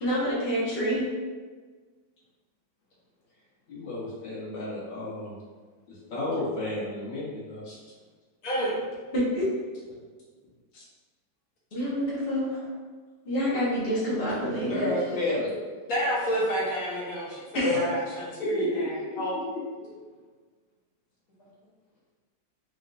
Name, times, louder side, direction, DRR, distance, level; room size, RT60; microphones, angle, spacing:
voice 1, 0.0-1.0 9.1-9.5 10.7-10.8 11.7-12.7 13.2-14.9 17.5-17.8, equal, 35° left, -8 dB, 1.2 m, -27 dB
voice 2, 3.7-5.4 5.9-7.6 14.6-15.5 18.4-19.0 19.5-19.9, left 2 dB, 75° left, -8 dB, 1.8 m, -32 dB
voice 3, 8.4-8.8 15.9-19.3, equal, 50° left, -7 dB, 1.6 m, -29 dB
4.4 x 3.1 x 2.6 m, 1.4 s
omnidirectional pair, 2.0 m